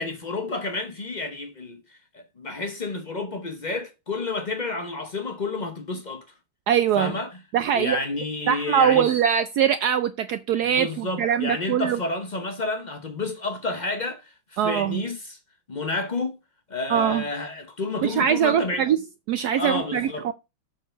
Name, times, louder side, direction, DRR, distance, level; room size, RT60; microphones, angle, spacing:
voice 1, 0.0-6.2 6.9-7.4 7.7-9.1 10.6-15.4 15.7-16.4 16.7-18.9 19.6-20.3, left 3 dB, 65° left, 0.4 m, -30 dB
voice 2, 6.7-7.1 7.5-8.0 8.5-12.0 14.6-15.0 16.9-17.2 18.0-19.0 19.3-20.3, right 9 dB, 85° right, 0.8 m, -22 dB
7.3 x 4.7 x 5.6 m
omnidirectional pair, 2.3 m